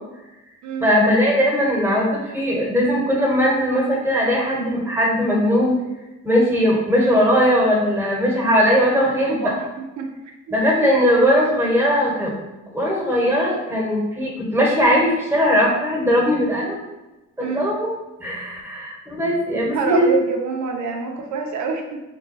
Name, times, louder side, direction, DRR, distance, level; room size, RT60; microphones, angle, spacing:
voice 1, 0.8-5.7 6.2-9.5 10.5-12.4 12.7-16.8 17.4-17.9 18.2-20.1, equal, 10° right, -4 dB, 1.4 m, -19 dB
voice 2, 9.2-9.7 10.0-10.1 10.5-10.6 17.4-17.7 19.6-22.0, right 5 dB, 70° right, 2 dB, 0.7 m, -26 dB
3.8 x 2.3 x 4.0 m, 1.0 s
cardioid pair, 90°, 30 cm